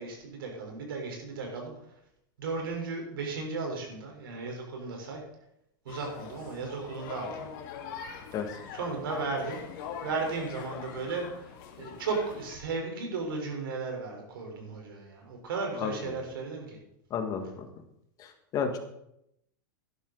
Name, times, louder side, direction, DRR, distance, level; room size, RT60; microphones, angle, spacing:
voice 1, 0.0-1.7 2.4-5.2 5.8-7.5 8.7-9.6 10.0-11.5 11.8-16.8, right 4 dB, 85° right, 1 dB, 4.2 m, -35 dB
sound 1, 5.9-12.6, left 7 dB, 55° left, 2.3 m, -43 dB
voice 2, 17.1-17.7 18.2-18.8, left 6 dB, 30° left, 5 dB, 1.8 m, -32 dB
12.5 x 11.0 x 4.1 m, 0.80 s
supercardioid pair, 140°, 11 cm